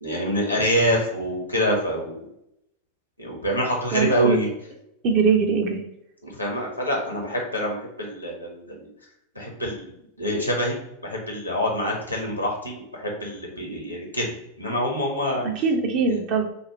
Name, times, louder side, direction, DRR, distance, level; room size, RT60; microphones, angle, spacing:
voice 1, 0.0-2.2 3.2-4.5 6.2-8.9 9.3-10.8 11.0-14.3 14.6-15.4, equal, 85° left, 0 dB, 1.3 m, -26 dB
voice 2, 3.9-4.4 5.0-5.8 15.6-16.4, right 5 dB, 40° right, 3 dB, 0.9 m, -21 dB
5.6 x 2.2 x 3.5 m, 0.80 s
figure-of-eight pair, 90°, 0 cm